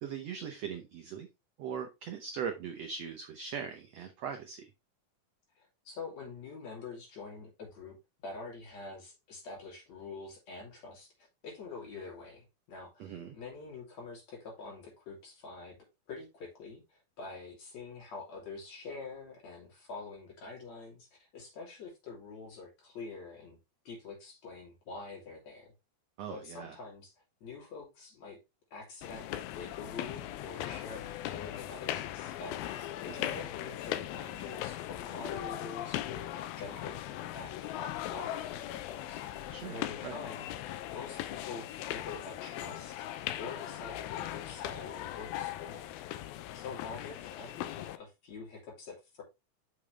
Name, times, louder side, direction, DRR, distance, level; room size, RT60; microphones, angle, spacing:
voice 1, 0.0-1.3 1.6-4.7 13.0-13.4 26.2-26.7 33.2-33.3 39.5-39.8 40.0-40.1, right 7 dB, 80° right, 6 dB, 1.4 m, -40 dB
voice 2, 5.6-8.0 8.2-11.1 11.4-15.8 16.1-23.6 23.9-25.7 26.3-27.1 27.4-28.4 28.7-45.9 46.5-49.2, left 4 dB, 50° left, -1 dB, 4.0 m, -46 dB
sound 1, 29.0-48.0, left 13 dB, 90° left, 2.5 m, -39 dB
6.8 x 6.3 x 3.4 m, 0.24 s
omnidirectional pair, 4.2 m